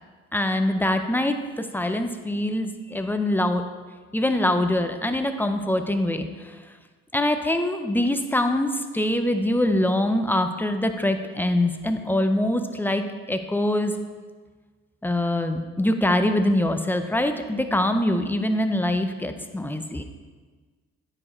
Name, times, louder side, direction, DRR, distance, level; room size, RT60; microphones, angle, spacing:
voice 1, 0.3-3.6 4.1-6.6 7.1-13.9 15.0-20.0, left 1 dB, 5° left, 7 dB, 0.6 m, -24 dB
9.9 x 4.7 x 4.3 m, 1.4 s
cardioid pair, 90°, 30 cm